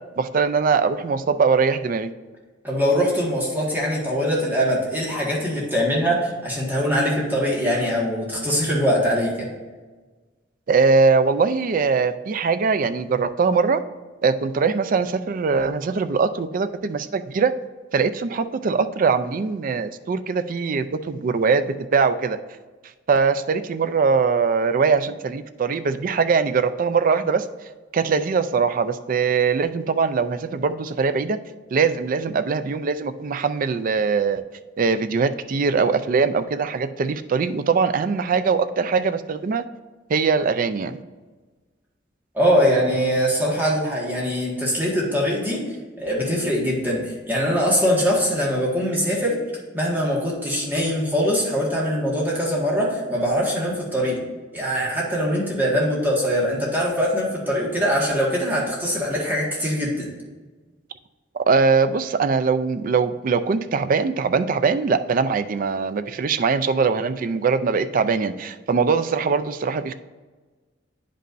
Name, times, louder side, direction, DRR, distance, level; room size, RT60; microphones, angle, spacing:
voice 1, 0.2-2.1 10.7-13.8 14.2-17.5 17.9-22.4 23.1-27.4 27.9-31.4 31.7-34.4 34.8-39.6 40.1-41.0 61.5-69.9, right 5 dB, 50° right, 11 dB, 0.4 m, -21 dB
voice 2, 2.6-9.5 42.3-45.6 46.0-49.4 49.7-54.2 54.5-60.1, equal, 10° right, -5 dB, 1.6 m, -22 dB
9.9 x 5.4 x 2.6 m, 1.3 s
head